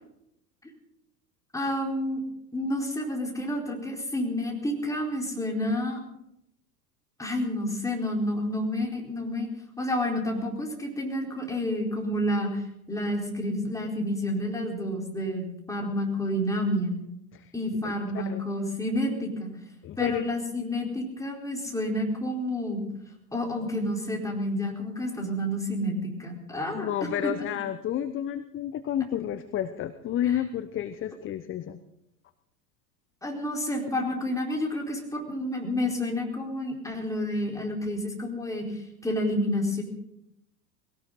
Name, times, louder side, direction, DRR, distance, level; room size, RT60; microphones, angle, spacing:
voice 1, 1.5-2.2 2.5-6.0 7.2-9.5 9.8-12.6 12.9-17.0 17.5-19.5 20.0-22.8 23.3-26.9 27.2-27.3 33.2-39.8, left 1 dB, 5° left, 0 dB, 4.4 m, -29 dB
voice 2, 17.8-18.4 19.8-20.3 26.7-31.8, left 10 dB, 25° left, 12 dB, 0.9 m, -31 dB
20.0 x 18.0 x 4.1 m, 0.79 s
figure-of-eight pair, 85°, 48 cm